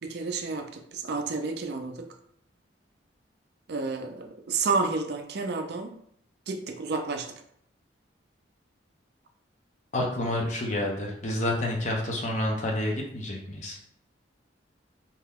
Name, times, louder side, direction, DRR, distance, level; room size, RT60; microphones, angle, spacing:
voice 1, 0.0-2.1 3.7-5.9 6.5-7.3, right 4 dB, 55° right, 5 dB, 0.4 m, -30 dB
voice 2, 9.9-13.8, left 1 dB, 40° left, 0 dB, 0.6 m, -29 dB
2.8 x 2.2 x 3.5 m, 0.70 s
head